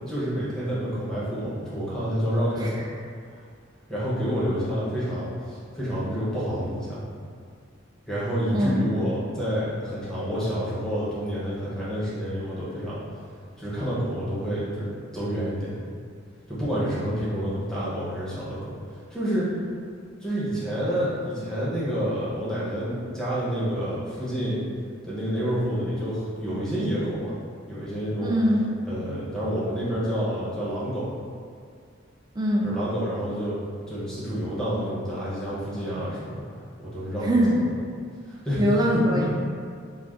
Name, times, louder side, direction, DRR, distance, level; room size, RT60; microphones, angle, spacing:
voice 1, 0.1-2.8 3.9-7.0 8.1-13.0 13.6-15.8 16.5-18.7 19.1-19.5 20.2-24.6 25.0-27.3 27.7-28.3 28.8-31.1 32.6-33.6 33.9-36.3 36.8-37.3 38.3-38.6 39.1-39.4, equal, 5° left, -10 dB, 0.7 m, -28 dB
voice 2, 8.5-8.8 28.2-28.7 32.4-32.7 37.2-37.6 38.6-39.4, equal, 20° right, -2 dB, 0.3 m, -22 dB
2.4 x 2.3 x 3.4 m, 2.1 s
head